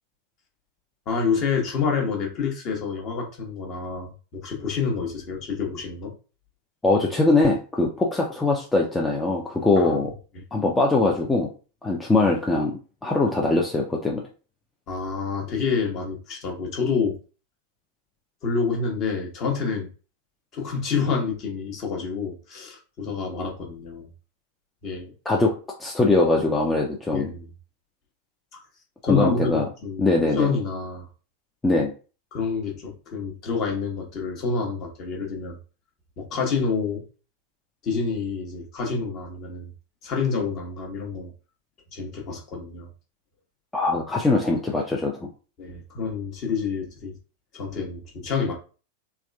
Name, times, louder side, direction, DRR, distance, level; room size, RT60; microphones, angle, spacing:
voice 1, 1.1-6.1 9.8-10.4 14.9-17.2 18.4-19.9 20.5-24.1 24.8-25.1 27.1-27.4 28.5-28.6 29.0-31.1 32.3-35.6 36.2-37.0 37.8-39.7 40.0-41.3 41.9-42.9 45.6-47.2 47.5-48.5, left 5 dB, 40° left, 0 dB, 1.0 m, -28 dB
voice 2, 6.8-10.1 10.5-11.5 11.8-12.7 13.0-14.2 25.3-25.5 25.8-27.3 29.1-29.7 30.0-30.5 31.6-31.9 43.7-45.3, left 2 dB, 10° left, -1 dB, 0.5 m, -22 dB
3.5 x 2.3 x 2.2 m, 0.35 s
figure-of-eight pair, 90°, 0 cm